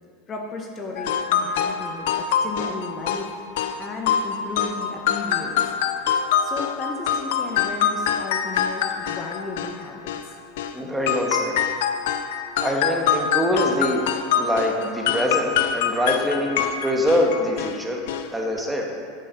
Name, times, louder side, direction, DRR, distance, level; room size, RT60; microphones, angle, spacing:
voice 1, 0.3-3.5 3.8-5.7 6.4-10.3, left 3 dB, 35° left, 1 dB, 1.3 m, -35 dB
sound 1, 1.0-10.8 11.1-17.8 18.1-18.3 18.6-18.7, left 8 dB, 70° left, 0.6 m, -25 dB
voice 2, 10.7-11.6 12.6-14.1 14.4-18.0 18.3-18.9, left 1 dB, 10° right, 0 dB, 1.7 m, -24 dB
9.2 x 7.5 x 5.9 m, 2.1 s
hypercardioid pair, 85°, 0 cm